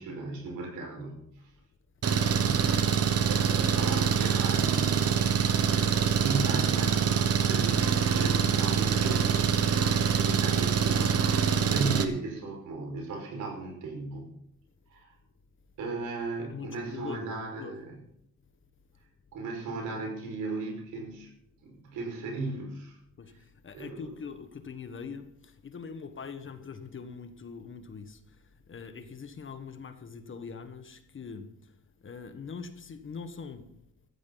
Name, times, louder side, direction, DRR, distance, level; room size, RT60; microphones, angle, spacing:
voice 1, 0.0-1.5 2.2-14.3 14.9-15.1 15.8-18.0 19.3-21.3 21.6-23.0 23.3-23.4 23.7-24.2, right 3 dB, 85° right, 5.8 m, -37 dB
Engine, 2.0-12.0, right 7 dB, 50° right, 1.5 m, -25 dB
voice 2, 16.5-17.8 23.2-28.4 28.7-31.5 32.0-33.7, left 5 dB, 40° left, 1.6 m, -42 dB
15.0 x 13.5 x 4.2 m
cardioid pair, 90°, 30 cm